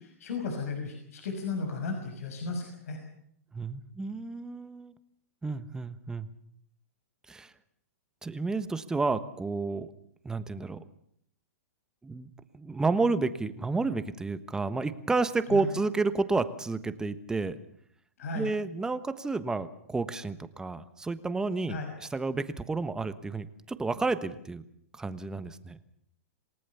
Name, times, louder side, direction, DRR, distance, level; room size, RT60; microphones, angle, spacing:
voice 1, 0.0-3.0 15.5-15.7 18.2-18.5 21.7-21.9, left 4 dB, 70° left, 4 dB, 6.1 m, -35 dB
voice 2, 3.5-4.9 5.4-6.3 7.3-7.5 8.2-9.9 10.2-10.8 12.0-17.6 18.3-24.6 25.0-25.8, right 3 dB, 10° right, 12 dB, 1.2 m, -31 dB
27.5 x 18.5 x 7.1 m, 0.69 s
hypercardioid pair, 140°, 8 cm